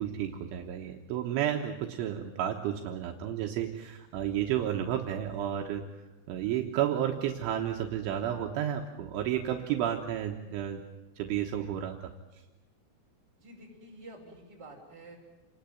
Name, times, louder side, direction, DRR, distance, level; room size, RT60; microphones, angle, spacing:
voice 1, 0.0-5.8 6.3-10.8 11.2-12.0, right 10 dB, 75° right, 2 dB, 3.6 m, -31 dB
voice 2, 13.4-15.2, right 1 dB, 20° right, -1 dB, 6.0 m, -49 dB
28.5 x 20.5 x 9.3 m, 1.0 s
omnidirectional pair, 5.9 m